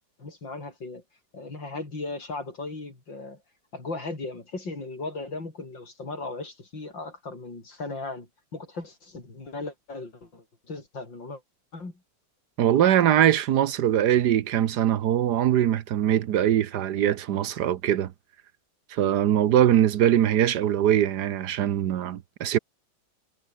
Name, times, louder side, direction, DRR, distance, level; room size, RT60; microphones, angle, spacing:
voice 1, 0.2-1.0 1.3-3.4 3.7-11.4 11.7-11.9, left 3 dB, 65° left, 6.0 m, -37 dB
voice 2, 12.6-18.1 18.9-22.6, right 11 dB, 65° right, 1.3 m, -22 dB
omnidirectional pair, 2.2 m